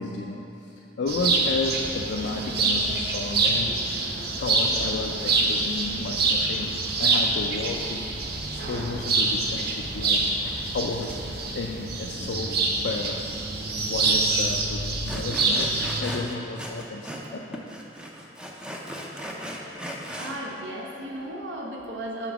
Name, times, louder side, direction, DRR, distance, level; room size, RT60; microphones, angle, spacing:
voice 1, 0.0-4.0 4.4-8.2 8.5-13.3 13.8-17.6, left 3 dB, 70° left, 1 dB, 0.4 m, -33 dB
sound 1, 1.1-16.0, right 3 dB, 60° right, 0.6 m, -26 dB
Sawing, 14.0-14.1 14.5-14.6 15.1-17.3 17.5-20.4, equal, 5° right, 0.5 m, -37 dB
voice 2, 20.2-22.3, right 1 dB, 85° right, -2 dB, 0.9 m, -35 dB
6.0 x 3.8 x 5.9 m, 2.9 s
head